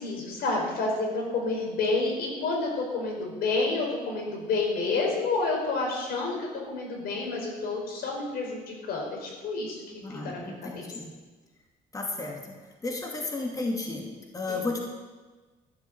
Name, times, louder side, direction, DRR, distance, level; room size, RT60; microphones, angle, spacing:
voice 1, 0.0-10.9 14.5-14.6, left 3 dB, 65° left, -1 dB, 4.7 m, -29 dB
voice 2, 10.0-11.1 11.9-12.4 12.8-14.1 14.3-14.8, left 3 dB, 20° left, 0 dB, 2.4 m, -33 dB
14.0 x 7.8 x 7.1 m, 1.3 s
cardioid pair, 110°, 17 cm